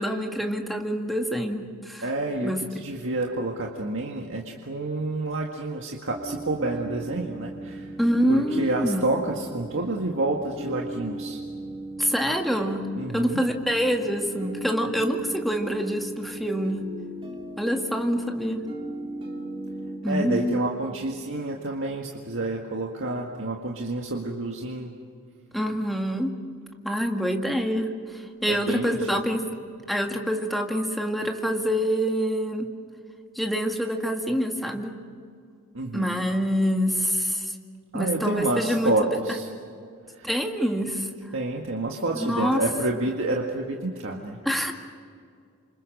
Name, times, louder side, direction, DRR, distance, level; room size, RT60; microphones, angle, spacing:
voice 1, 0.0-2.0 2.4-2.6 8.0-9.0 12.0-12.9 13.1-16.8 17.6-18.6 20.0-20.6 25.5-26.3 26.8-29.5 29.9-32.7 33.4-34.9 35.9-37.5 37.9-39.2 40.2-41.1 42.2-42.6 44.5-44.7, equal, ahead, 2 dB, 1.9 m, -26 dB
voice 2, 2.0-7.9 8.3-11.4 12.9-13.4 20.0-24.9 28.4-29.2 35.7-36.2 37.9-39.5 40.1-40.3 41.3-44.4, right 2 dB, 60° right, 0 dB, 1.9 m, -29 dB
sound 1, 6.1-20.0, right 2 dB, 25° right, 3.4 m, -38 dB
28.5 x 26.0 x 6.6 m, 2.3 s
head